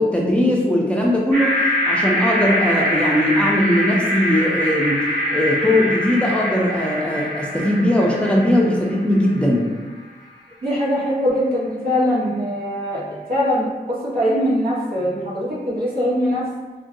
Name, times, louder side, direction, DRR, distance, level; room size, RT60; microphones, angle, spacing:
voice 1, 0.0-1.6 1.9-5.0 5.3-9.7, left 1 dB, 5° left, -3 dB, 0.5 m, -19 dB
sound 1, 1.3-9.5, equal, 85° right, 1.3 m, -23 dB
voice 2, 10.6-13.0 13.3-16.4, equal, 65° right, -8 dB, 1.2 m, -22 dB
3.0 x 2.5 x 2.6 m, 1.3 s
wide cardioid pair, 75°, 17 cm